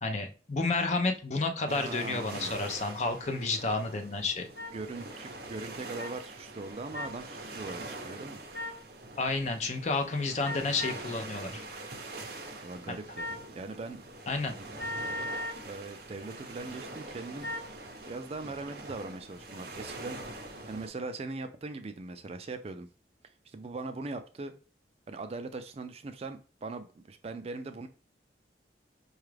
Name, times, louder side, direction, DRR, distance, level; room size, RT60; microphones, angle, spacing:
voice 1, 0.0-4.5 9.2-11.6 12.9-13.0 14.3-14.5, left 3 dB, 40° left, 0.6 m, -31 dB
voice 2, 1.7-2.5 4.7-8.4 12.6-14.0 14.5-14.7 15.6-17.5 18.0-20.2 20.7-22.9 23.5-24.5 25.1-27.9, right 3 dB, 35° right, 0.3 m, -40 dB
sound 1, 1.7-20.9, right 2 dB, 60° right, 0.7 m, -44 dB
sound 2, 4.5-4.7 6.0-6.1 6.9-7.2 8.5-8.8 10.4-11.0 13.1-13.5 14.8-15.6 17.4-17.7, left 1 dB, 75° left, 1.0 m, -37 dB
4.7 x 2.4 x 3.2 m
head